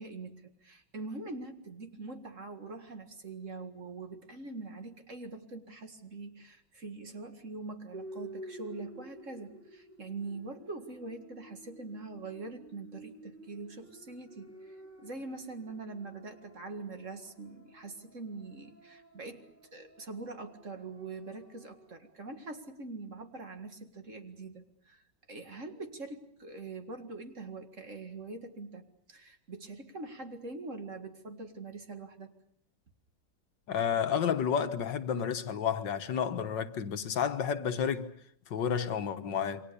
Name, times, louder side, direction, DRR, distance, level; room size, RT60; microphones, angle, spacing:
voice 1, 0.0-32.3, right 3 dB, 45° right, 2.3 m, -43 dB
sound 1, 7.9-22.1, right 1 dB, 5° left, 2.1 m, -52 dB
voice 2, 33.7-38.1 38.5-39.6, left 7 dB, 80° left, 1.9 m, -31 dB
28.0 x 24.5 x 6.9 m
omnidirectional pair, 1.9 m